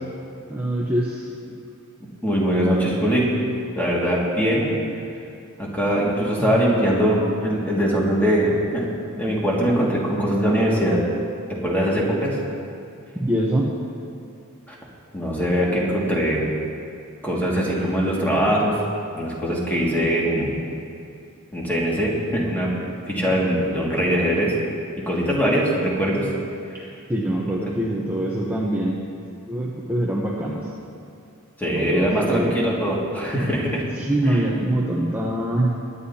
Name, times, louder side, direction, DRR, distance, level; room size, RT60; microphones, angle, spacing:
voice 1, 0.5-1.3 6.4-6.6 13.2-13.7 27.1-29.0 29.5-30.6 31.7-32.5 34.0-35.8, right 1 dB, 10° right, -4 dB, 0.9 m, -24 dB
voice 2, 2.2-3.3 3.7-4.7 5.6-8.9 9.2-11.0 11.6-12.4 14.7-14.8 15.1-16.4 17.2-18.8 19.1-20.6 21.5-22.7 23.1-24.5 25.1-26.3 31.6-33.8 34.3-34.4, equal, 10° left, -5 dB, 2.1 m, -22 dB
21.5 x 9.8 x 2.8 m, 2.6 s
head